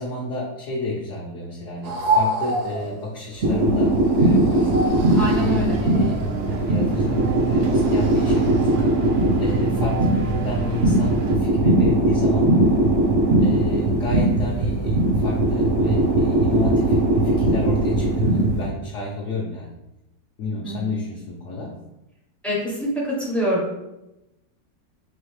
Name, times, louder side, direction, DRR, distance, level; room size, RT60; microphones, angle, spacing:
voice 1, 0.0-4.9 5.4-6.3 6.6-8.9 9.4-12.6 13.4-19.8 20.4-21.8, left 3 dB, 65° left, -4 dB, 0.8 m, -30 dB
sound 1, 1.8-8.8, right 1 dB, 75° right, 1.0 m, -29 dB
sound 2, 3.4-18.7, right 2 dB, 55° right, 0.7 m, -20 dB
voice 2, 5.1-5.8 20.6-20.9 22.4-23.8, right 1 dB, ahead, -5 dB, 0.4 m, -26 dB
sound 3, 5.1-11.4, right 5 dB, 90° right, 1.4 m, -31 dB
4.2 x 2.8 x 3.2 m, 0.91 s
omnidirectional pair, 2.0 m